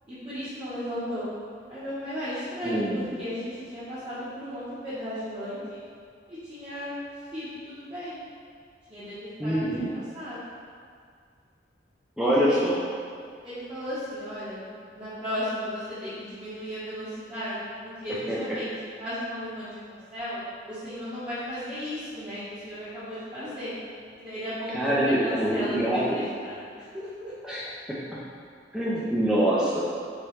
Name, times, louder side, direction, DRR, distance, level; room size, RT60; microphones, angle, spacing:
voice 1, 0.1-1.3 1.7-5.8 6.3-6.9 7.3-8.3 8.9-10.5 12.2-12.7 13.4-14.6 14.9-17.6 17.8-18.7 19.0-20.4 20.7-23.7 24.1-27.3, equal, 25° right, -13 dB, 0.9 m, -35 dB
voice 2, 2.6-3.0 9.4-9.9 12.2-12.8 24.7-26.2 27.4-28.0 28.7-29.8, right 1 dB, 5° right, -8 dB, 0.4 m, -25 dB
4.7 x 2.9 x 3.1 m, 2.2 s
head